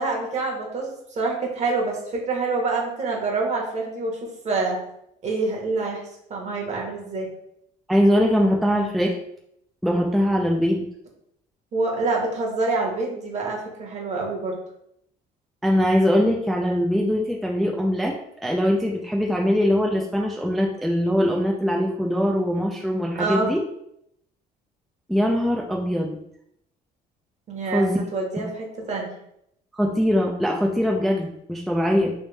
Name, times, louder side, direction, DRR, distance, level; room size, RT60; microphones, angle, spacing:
voice 1, 0.0-4.8 5.2-6.0 6.3-7.3 11.7-14.6 23.1-23.5 27.5-29.1, right 3 dB, 45° right, 0 dB, 1.1 m, -26 dB
voice 2, 7.9-9.1 9.8-10.9 15.6-18.1 18.4-23.6 25.1-26.2 27.7-28.0 29.7-32.1, equal, ahead, -1 dB, 0.4 m, -22 dB
3.2 x 3.0 x 3.3 m, 0.75 s
cardioid pair, 110°, 17 cm